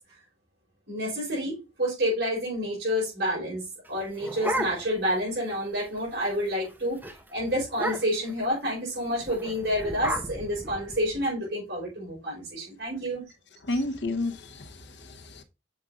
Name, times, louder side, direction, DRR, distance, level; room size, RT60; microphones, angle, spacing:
voice 1, 0.9-3.6 3.9-7.0 7.3-13.3, equal, 70° right, 4.7 m, -29 dB
sound 1, 3.9-5.1 5.5-5.6 5.9-6.2 6.5-6.7 7.0-7.2 7.7-8.3 9.2-11.3, right 1 dB, 10° right, 1.0 m, -33 dB
voice 2, 13.7-15.4, left 2 dB, 80° left, 0.9 m, -31 dB
7.2 x 4.9 x 3.7 m
head